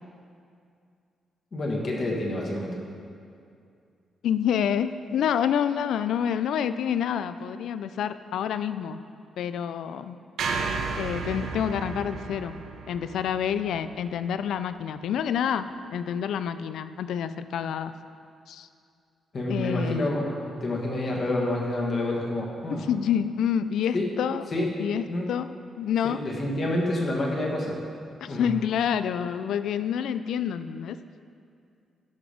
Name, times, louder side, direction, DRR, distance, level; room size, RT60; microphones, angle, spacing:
voice 1, 1.5-2.8 19.3-22.9 23.9-24.1 24.5-24.7 25.1-25.3 26.0-27.8 28.3-28.5, left 1 dB, 35° left, -1 dB, 1.6 m, -28 dB
voice 2, 4.2-9.0 9.4-10.2 11.0-12.6 12.9-15.7 15.9-17.9 18.5-18.7 19.5-20.0 22.7-24.4 24.8-25.5 25.8-26.2 28.2-31.0, left 8 dB, 80° left, 12 dB, 0.3 m, -28 dB
sound 1, 10.4-14.7, right 4 dB, 80° right, 0.9 m, -33 dB
12.5 x 6.0 x 5.1 m, 2.4 s
wide cardioid pair, 160°, 0 cm